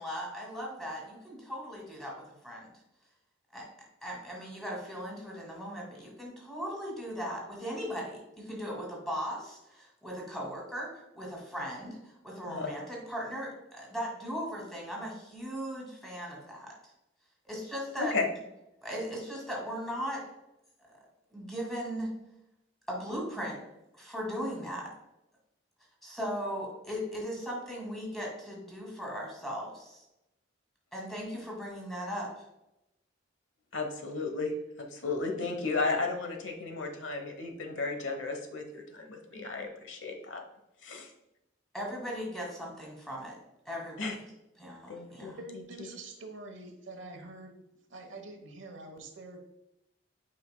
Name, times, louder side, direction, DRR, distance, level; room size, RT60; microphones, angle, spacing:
voice 1, 0.0-2.7 3.5-3.7 4.0-16.7 17.4-18.1 18.8-20.3 21.3-22.1 22.9-23.6 23.9-24.9 26.0-30.0 30.9-32.3 41.7-43.4 43.7-44.1 44.6-45.4, equal, ahead, -3 dB, 2.2 m, -38 dB
voice 2, 18.0-18.3 33.7-40.4 40.8-41.1 44.0-44.1 44.9-45.3, left 3 dB, 80° left, 4 dB, 1.0 m, -34 dB
voice 3, 45.4-47.6 47.9-49.4, right 2 dB, 80° right, 4 dB, 1.1 m, -45 dB
8.5 x 5.2 x 2.2 m, 0.89 s
head